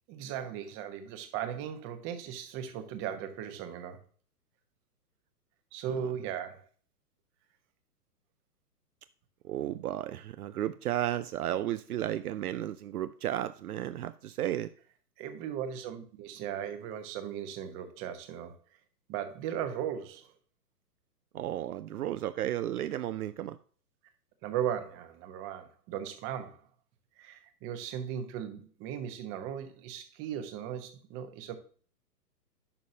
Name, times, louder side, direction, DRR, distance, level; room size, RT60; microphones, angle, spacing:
voice 1, 0.1-4.0 5.7-6.7 15.2-18.6 19.1-20.3 24.4-26.6 27.2-31.6, right 9 dB, 25° right, 1.1 m, -37 dB
voice 2, 9.4-14.7 21.3-23.6, right 12 dB, 65° right, 0.6 m, -33 dB
11.0 x 5.4 x 2.8 m
hypercardioid pair, 130°, 48 cm